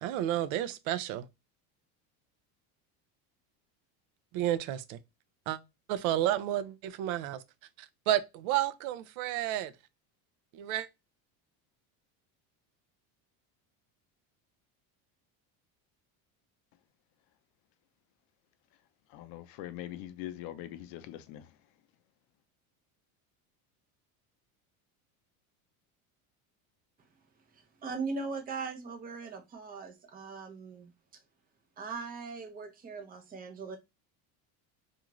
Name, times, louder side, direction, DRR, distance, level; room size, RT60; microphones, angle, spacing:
voice 1, 0.0-1.3 4.3-5.0 5.5-5.6 5.9-7.4 8.1-9.7 10.5-10.9, right 12 dB, 80° right, 0.5 m, -31 dB
voice 2, 19.1-21.5, left 13 dB, 60° left, 0.5 m, -42 dB
voice 3, 27.8-30.9 31.8-33.8, right 4 dB, 20° right, 0.6 m, -39 dB
2.5 x 2.4 x 2.9 m
cardioid pair, 140°, 41 cm